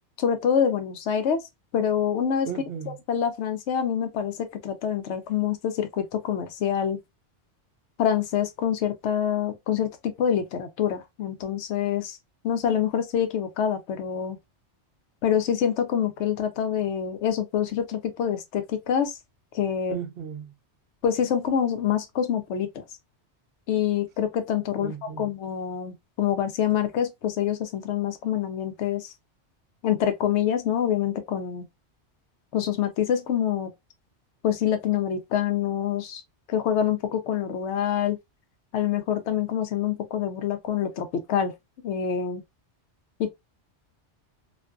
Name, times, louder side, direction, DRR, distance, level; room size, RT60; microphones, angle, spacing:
voice 1, 0.2-1.4 1.7-2.5 2.9-7.0 8.0-9.9 10.2-12.2 12.4-14.4 15.2-19.2 19.5-20.0 21.0-22.8 23.7-29.1 29.8-31.7 32.5-33.7 34.4-36.2 36.5-38.2 38.7-41.5 41.8-42.4 43.2-43.3, left 9 dB, 80° left, 0.9 m, -26 dB
voice 2, 2.5-3.0 19.9-20.5 24.8-25.3, right 8 dB, 65° right, 0.7 m, -35 dB
2.5 x 2.4 x 2.2 m
omnidirectional pair, 1.2 m